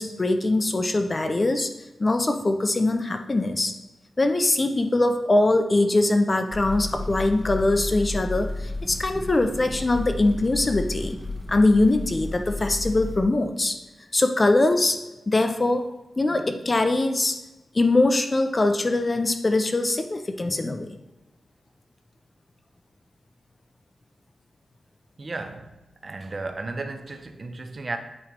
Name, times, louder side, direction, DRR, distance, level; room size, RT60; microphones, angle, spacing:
voice 1, 0.0-1.7 2.0-3.7 4.2-11.2 11.5-13.8 14.1-15.0 15.3-15.9 16.2-17.4 17.7-21.0, left 2 dB, 25° left, 0.5 m, -22 dB
sound 1, 6.5-13.2, left 2 dB, ahead, 0.8 m, -33 dB
voice 2, 25.2-25.8 26.0-28.0, right 3 dB, 35° right, 0.5 m, -34 dB
8.5 x 3.1 x 5.2 m
wide cardioid pair, 160°, 0 cm